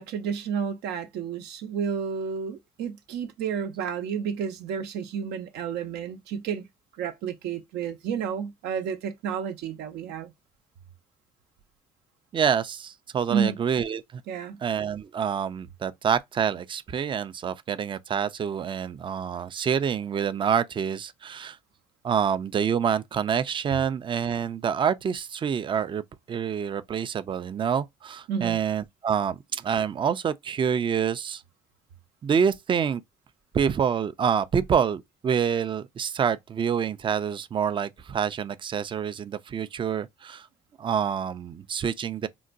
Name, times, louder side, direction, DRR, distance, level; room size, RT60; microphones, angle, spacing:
voice 1, 0.0-6.7 7.0-10.3 13.3-13.6 14.3-14.6 28.3-28.6, right 7 dB, 80° right, 0.6 m, -31 dB
voice 2, 12.3-14.2 14.6-21.6 22.0-26.0 26.3-31.4 32.2-33.0 33.5-40.5 40.8-42.3, right 7 dB, 30° right, 0.4 m, -27 dB
3.8 x 2.2 x 2.5 m
cardioid pair, 110°, 17 cm